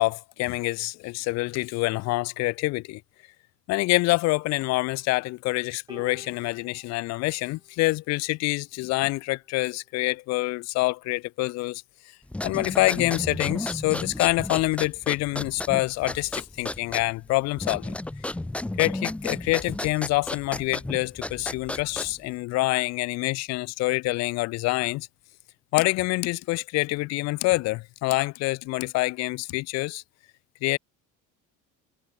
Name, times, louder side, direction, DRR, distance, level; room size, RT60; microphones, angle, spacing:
voice 1, 0.0-3.0 3.7-11.8 12.4-18.0 18.8-25.1 25.7-30.0 30.6-30.8, left 22 dB, 55° left, 0.5 m, -26 dB
sound 1, 5.9-8.4 9.4-9.5, right 3 dB, 15° right, 6.0 m, -51 dB
sound 2, 12.3-22.3, left 2 dB, 5° left, 0.5 m, -33 dB
cardioid pair, 155°, 31 cm